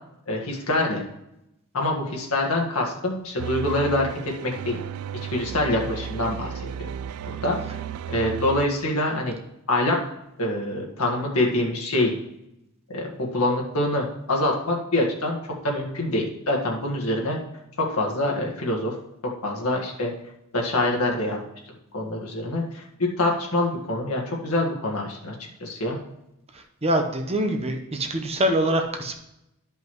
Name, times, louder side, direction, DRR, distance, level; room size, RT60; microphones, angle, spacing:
voice 1, 0.3-1.0 1.7-4.8 5.3-6.5 6.8-6.9 7.4-7.6 8.1-9.3 9.7-10.0 10.4-12.1 12.9-17.4 17.8-18.9 19.4-20.1 20.5-21.4 21.9-25.3 25.6-26.0, left 1 dB, 80° left, -1 dB, 1.7 m, -25 dB
sound 1, 3.4-8.7, right 8 dB, 90° right, 0.3 m, -34 dB
voice 2, 26.5-29.2, right 1 dB, 30° right, 4 dB, 0.9 m, -24 dB
12.5 x 5.4 x 3.1 m, 0.85 s
head